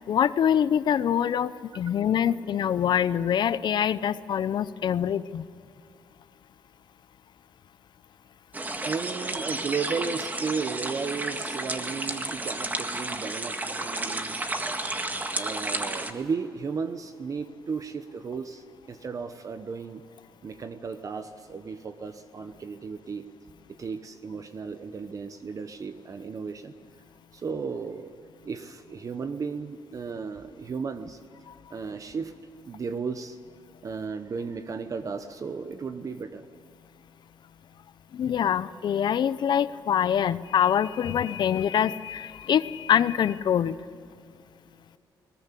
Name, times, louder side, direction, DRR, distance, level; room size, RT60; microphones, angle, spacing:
voice 1, 0.1-5.5 31.5-31.6 38.1-43.8, left 9 dB, 60° left, 16 dB, 0.7 m, -25 dB
sound 1, 8.5-16.1, right 2 dB, 20° right, 1.7 m, -32 dB
voice 2, 8.9-14.4 15.3-20.0 20.4-23.2 23.8-26.7 27.3-28.1 28.4-31.2 31.7-32.3 32.6-33.4 33.8-36.4, right 5 dB, 40° right, 9 dB, 1.0 m, -34 dB
20.0 x 19.0 x 8.4 m, 2.5 s
cardioid pair, 95°, 8 cm